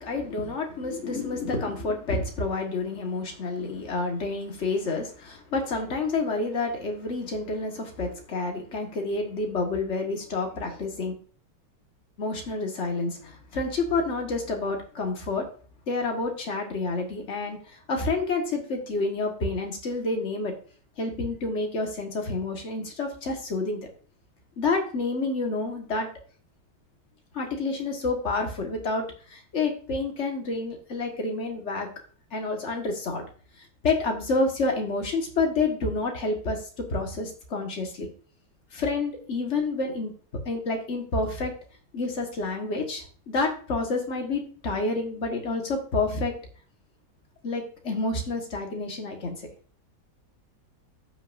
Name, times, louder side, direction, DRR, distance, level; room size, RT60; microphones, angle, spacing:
voice 1, 0.0-11.1 12.2-15.5 15.9-17.6 17.9-20.5 21.0-23.9 24.6-26.1 27.3-29.0 29.3-31.9 32.3-33.2 33.8-38.1 38.7-40.1 40.5-41.5 41.9-46.3 47.4-49.4, left 3 dB, 40° left, 2 dB, 1.9 m, -29 dB
15.0 x 6.0 x 2.6 m, 0.42 s
omnidirectional pair, 2.0 m